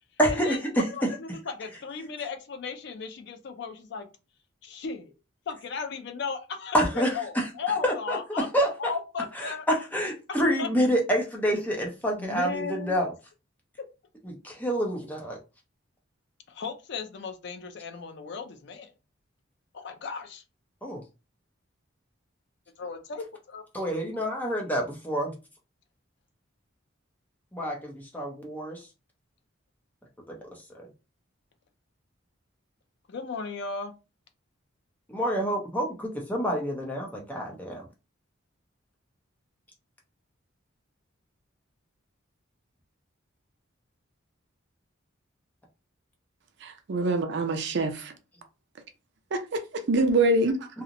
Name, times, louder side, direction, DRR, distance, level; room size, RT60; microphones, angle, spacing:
voice 1, 0.2-0.8 6.7-7.1 7.4-7.5 7.8-8.2 8.5-8.7 9.4-13.1 14.2-15.4 20.8-21.0 23.7-25.3 27.5-28.8 30.3-30.4 30.7-30.9 35.1-37.8, equal, 10° left, 0.6 m, -27 dB
voice 2, 0.9-4.1 4.6-5.1 5.5-8.5 8.8-9.7 10.6-10.7 12.2-13.0 16.5-18.9 19.7-20.4 22.8-23.6 33.1-33.9, left 5 dB, 55° left, 0.4 m, -35 dB
voice 3, 46.6-48.1 49.3-49.6 49.9-50.7, right 2 dB, 55° right, 0.4 m, -25 dB
2.8 x 2.0 x 2.5 m
head